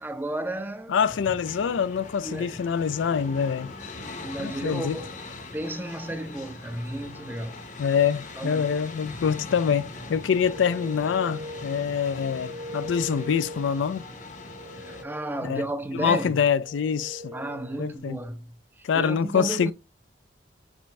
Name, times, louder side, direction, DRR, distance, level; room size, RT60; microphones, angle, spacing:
voice 1, 0.0-0.9 2.2-2.6 4.2-5.1 5.5-7.7 8.4-8.7 14.7-16.4 17.3-19.7, right 1 dB, 10° right, 0.5 m, -33 dB
voice 2, 0.9-3.7 4.4-5.0 7.8-14.0 15.4-15.6 15.9-17.3 17.8-18.2 18.8-19.7, left 7 dB, 80° left, 0.4 m, -25 dB
sound 1, 1.0-15.0, left 2 dB, 40° left, 0.7 m, -41 dB
sound 2, 10.1-18.0, left 1 dB, 35° right, 1.0 m, -42 dB
6.0 x 2.6 x 3.3 m
head